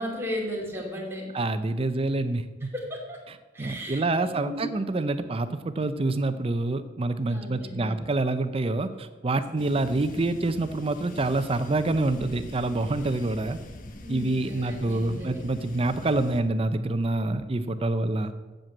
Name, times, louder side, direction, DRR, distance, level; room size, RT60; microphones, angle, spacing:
voice 1, 0.0-1.3 2.6-3.2 3.5-4.7 7.3-8.0 9.3-9.4 14.0-15.4, equal, 15° right, -2 dB, 2.5 m, -35 dB
voice 2, 1.3-2.7 3.6-13.6 14.1-18.3, right 2 dB, 30° right, 11 dB, 0.5 m, -27 dB
sound 1, 9.6-16.4, left 1 dB, 45° left, 1.1 m, -43 dB
7.9 x 7.5 x 8.4 m, 1.2 s
head